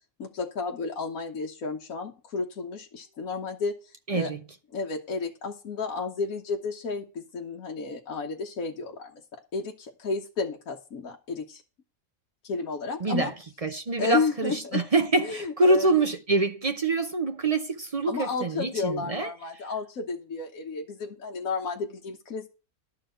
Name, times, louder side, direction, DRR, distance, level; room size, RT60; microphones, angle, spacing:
voice 1, 0.2-3.7 4.1-4.3 4.7-11.6 12.4-13.3 14.0-14.8 15.2-15.9 18.1-22.5, left 4 dB, 70° left, 1.5 m, -32 dB
voice 2, 4.1-4.4 13.0-13.3 13.6-19.3, right 2 dB, 40° right, 0.5 m, -25 dB
12.0 x 4.5 x 7.6 m
omnidirectional pair, 1.5 m